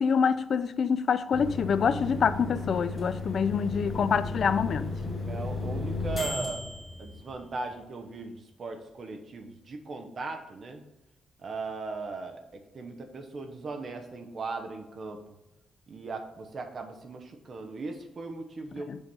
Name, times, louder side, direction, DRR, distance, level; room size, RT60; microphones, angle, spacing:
voice 1, 0.0-4.9 18.9-19.0, left 6 dB, 50° left, 0.4 m, -26 dB
sound 1, 1.3-7.7, left 2 dB, 15° left, 2.6 m, -34 dB
voice 2, 3.8-4.1 5.2-6.6 7.0-10.8 11.4-15.2 15.9-18.9, right 3 dB, 40° right, 1.0 m, -38 dB
6.9 x 5.2 x 4.2 m
cardioid pair, 140°, 0 cm